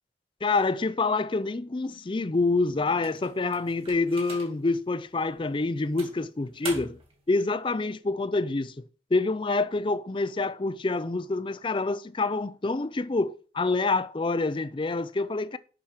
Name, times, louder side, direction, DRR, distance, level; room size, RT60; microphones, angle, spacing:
voice 1, 0.4-7.0 7.3-15.6, left 3 dB, 25° left, 0.4 m, -27 dB
sound 1, 3.0-4.7 5.3-5.4 6.0-7.2, right 3 dB, 30° right, 2.4 m, -42 dB
7.4 x 6.2 x 7.2 m
head